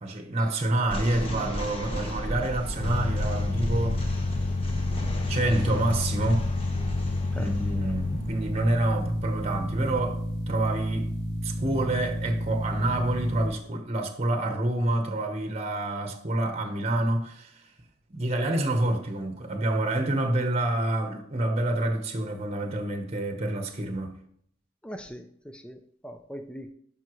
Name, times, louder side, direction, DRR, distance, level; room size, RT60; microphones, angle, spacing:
voice 1, 0.0-4.1 5.3-6.5 7.3-11.1 11.4-17.6 18.1-24.1, right 1 dB, 35° right, 0.9 m, -28 dB
sound 1, 0.8-12.1, equal, 30° left, 1.3 m, -35 dB
sound 2, 2.8-13.5, left 2 dB, 85° left, 2.5 m, -30 dB
voice 2, 24.8-26.7, equal, 5° left, 0.4 m, -41 dB
11.0 x 5.6 x 3.1 m
head